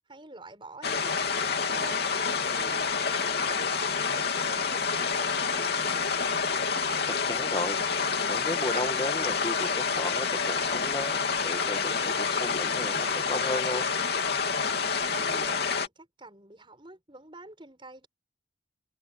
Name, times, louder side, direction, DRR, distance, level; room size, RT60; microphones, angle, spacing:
voice 1, 0.0-2.1 2.4-6.1 14.6-18.1, right 2 dB, 25° right, 7.2 m, -48 dB
sound 1, 0.8-15.9, left 5 dB, 55° left, 3.1 m, -28 dB
voice 2, 7.1-7.8 8.3-13.9, left 1 dB, 25° left, 1.7 m, -34 dB
head